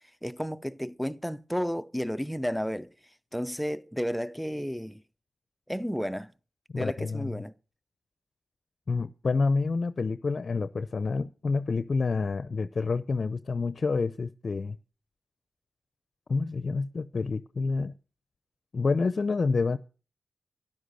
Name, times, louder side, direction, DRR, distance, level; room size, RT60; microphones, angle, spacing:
voice 1, 0.2-2.9 3.3-5.0 5.7-6.3 6.7-7.5, equal, ahead, 0.8 m, -32 dB
voice 2, 6.7-7.4 8.9-14.8 16.3-17.9 18.7-19.8, left 4 dB, 55° left, 0.7 m, -28 dB
13.0 x 11.0 x 6.5 m
cardioid pair, 55°, 0 cm